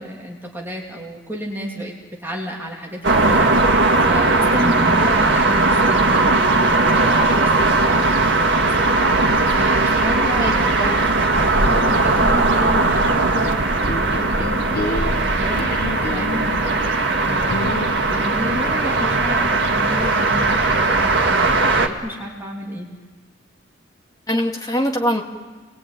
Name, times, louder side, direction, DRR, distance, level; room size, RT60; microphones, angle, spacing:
voice 1, 0.0-8.1 8.5-11.0 11.6-17.8 18.1-22.9, left 1 dB, 10° right, -2 dB, 3.1 m, -31 dB
sound 1, 3.0-21.9, right 2 dB, 60° right, 1.9 m, -18 dB
voice 2, 10.4-11.0 24.3-25.2, equal, 20° left, 1 dB, 2.1 m, -23 dB
sound 2, 13.8-16.6 17.5-19.5, left 1 dB, 50° left, 1.2 m, -30 dB
28.0 x 21.0 x 9.3 m, 1.4 s
head